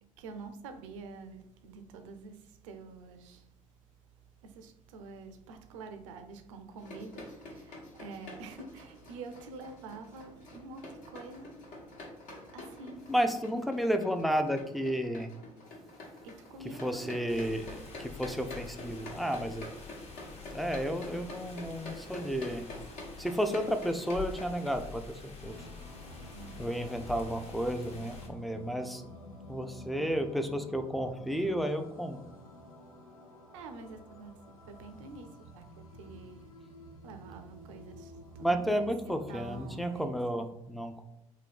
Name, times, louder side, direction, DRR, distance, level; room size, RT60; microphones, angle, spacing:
voice 1, 0.2-3.5 4.4-11.6 12.5-13.1 16.2-17.1 26.3-26.8 33.5-34.3 34.7-35.6 36.0-36.5 37.0-38.7 39.3-40.4, right 3 dB, 65° right, 0.5 m, -47 dB
sound 1, 6.8-24.7, left 2 dB, 60° left, 1.1 m, -47 dB
voice 2, 13.1-15.3 16.8-19.6 20.5-22.7 23.2-25.6 26.6-29.1 29.5-32.2 38.4-41.0, equal, ahead, 0.4 m, -32 dB
sound 2, 17.3-28.3, left 4 dB, 35° left, 0.9 m, -47 dB
sound 3, 25.4-40.1, left 1 dB, 85° left, 0.5 m, -50 dB
3.7 x 2.7 x 3.4 m
figure-of-eight pair, 55°, 17 cm